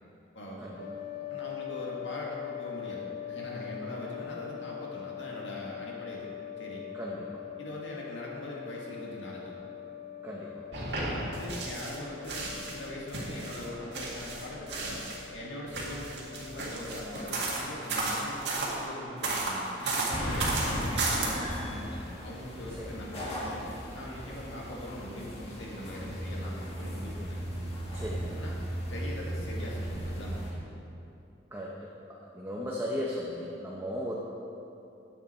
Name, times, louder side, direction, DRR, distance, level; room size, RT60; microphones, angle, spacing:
voice 1, 0.6-1.1 6.9-7.5 10.2-10.7 22.7-23.0 27.9-28.4 31.5-34.2, equal, 15° right, -4 dB, 0.7 m, -37 dB
sound 1, 0.8-18.0, left 10 dB, 50° left, 1.0 m, -43 dB
voice 2, 1.3-6.3 6.6-6.8 7.6-9.5 10.9-15.0 15.3-23.7 23.9-27.4 28.4-28.6 28.9-30.7, left 1 dB, 90° left, -3 dB, 1.9 m, -42 dB
sound 2, 10.7-12.0 12.2-15.2 15.7-18.7 19.2-21.3, right 3 dB, 65° right, 1.9 m, -33 dB
sound 3, 20.1-30.5, equal, 35° left, 1.6 m, -36 dB
9.9 x 7.9 x 4.3 m, 2.8 s
head